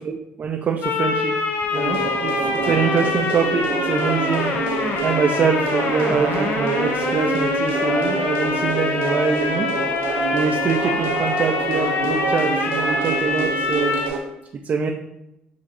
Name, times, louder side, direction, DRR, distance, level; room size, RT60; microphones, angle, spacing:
voice 1, 0.0-1.3 1.7-9.7 10.3-13.9 14.6-14.9, right 6 dB, 45° right, 2 dB, 0.5 m, -24 dB
sound 1, 0.8-14.1, left 4 dB, 60° left, 0.6 m, -24 dB
sound 2, 1.7-14.2, right 6 dB, 85° right, 0.7 m, -28 dB
6.3 x 2.8 x 2.6 m, 0.84 s
supercardioid pair, 70°, 4 cm